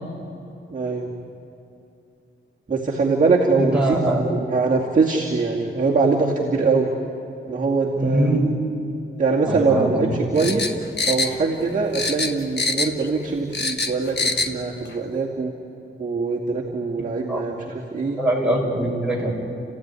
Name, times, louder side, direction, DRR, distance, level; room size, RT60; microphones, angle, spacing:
voice 1, 0.7-1.1 2.7-6.9 7.5-8.4 9.2-10.7 11.1-15.5 16.0-18.2, right 4 dB, 40° right, -4 dB, 2.4 m, -22 dB
voice 2, 3.6-4.2 8.0-8.5 9.4-10.5 17.0-17.4 17.9-19.3, right 1 dB, 5° right, -2 dB, 5.5 m, -23 dB
sound 1, 10.4-11.7 11.9-13.1 13.3-14.5 14.9-15.0, left 3 dB, 55° left, 1.3 m, -24 dB
30.0 x 15.5 x 9.8 m, 2.8 s
wide cardioid pair, 135°, 21 cm